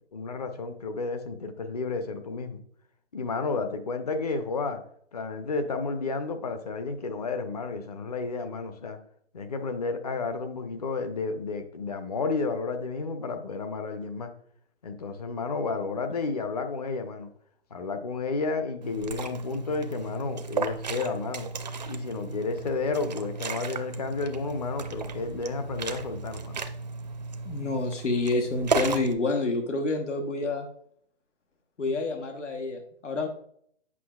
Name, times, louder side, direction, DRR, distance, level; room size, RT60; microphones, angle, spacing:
voice 1, 0.1-2.6 3.1-4.8 5.1-9.0 9.3-14.3 14.8-17.3 17.7-21.5 21.9-26.6, left 4 dB, 35° left, 7 dB, 0.6 m, -31 dB
Liquid, 18.8-29.1, right 4 dB, 40° right, 0.4 m, -34 dB
voice 2, 27.4-30.7 31.8-33.3, left 3 dB, 85° left, 4 dB, 1.2 m, -28 dB
8.4 x 5.3 x 2.3 m, 0.63 s
hypercardioid pair, 155°, 35 cm